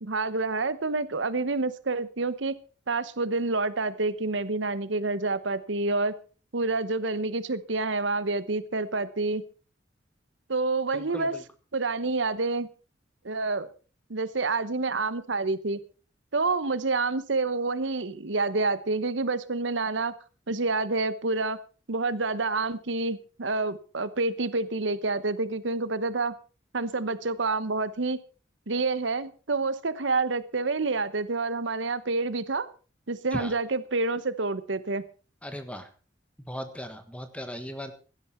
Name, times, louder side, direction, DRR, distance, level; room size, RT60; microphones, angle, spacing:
voice 1, 0.0-2.5 2.9-6.1 6.5-9.4 10.5-11.3 11.7-12.7 13.2-13.7 14.1-15.8 16.3-20.1 20.5-21.6 21.9-26.3 26.7-28.2 28.7-32.7 33.1-35.0, right 3 dB, 80° right, 14 dB, 1.0 m, -28 dB
voice 2, 10.9-11.4 33.3-33.5 35.4-35.9 36.5-37.9, equal, 5° left, 9 dB, 1.5 m, -37 dB
16.5 x 12.0 x 4.5 m, 0.37 s
head